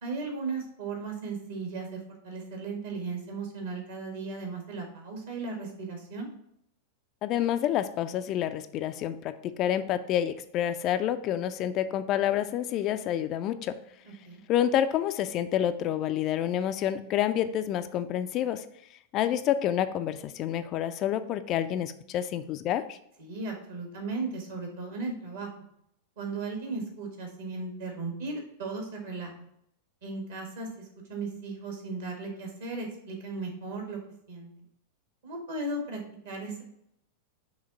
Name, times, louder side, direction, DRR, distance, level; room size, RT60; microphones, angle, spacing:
voice 1, 0.0-6.3 14.0-14.4 23.2-25.5 26.2-29.3 30.0-30.7 31.1-34.0 34.3-34.5 35.2-36.0 36.3-36.6, right 3 dB, 60° right, 1 dB, 1.7 m, -36 dB
voice 2, 7.2-13.8 14.5-18.7 19.1-23.0, left 10 dB, 35° left, 11 dB, 0.3 m, -28 dB
6.0 x 3.1 x 5.3 m, 0.73 s
figure-of-eight pair, 90°, 0 cm